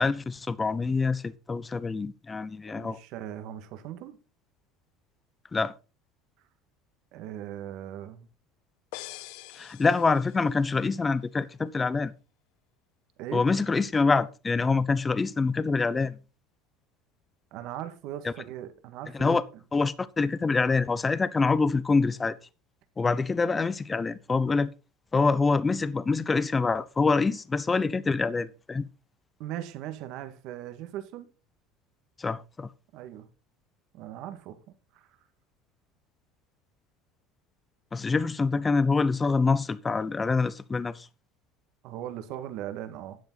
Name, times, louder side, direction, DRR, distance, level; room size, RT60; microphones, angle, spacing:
voice 1, 0.0-3.0 5.5-5.7 9.5-12.1 13.3-16.2 18.2-18.3 19.1-19.4 19.7-22.4 23.0-24.7 25.1-28.9 32.2-32.7 37.9-41.1, left 4 dB, 20° left, 0.8 m, -25 dB
voice 2, 2.8-4.2 7.1-8.3 13.2-13.4 17.5-19.4 29.4-31.3 32.9-33.3 33.9-34.6 34.9-35.1 41.8-43.2, right 11 dB, 65° right, 1.9 m, -39 dB
sound 1, 8.9-10.7, left 18 dB, 75° left, 0.6 m, -44 dB
12.0 x 8.1 x 4.1 m
supercardioid pair, 105°, 0 cm